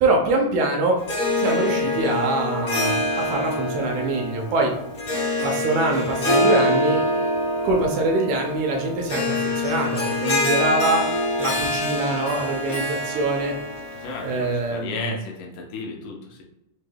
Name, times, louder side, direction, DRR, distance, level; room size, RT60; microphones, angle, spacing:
voice 1, 0.0-1.0 1.4-4.7 5.4-7.0 7.6-11.1 11.4-13.5 14.2-15.1, right 2 dB, 80° right, 1 dB, 2.0 m, -24 dB
Harp, 1.0-14.7, left 1 dB, 65° left, 1.0 m, -25 dB
voice 2, 13.9-16.4, left 4 dB, 85° left, 0 dB, 2.4 m, -34 dB
5.6 x 3.4 x 2.2 m, 0.83 s
omnidirectional pair, 3.5 m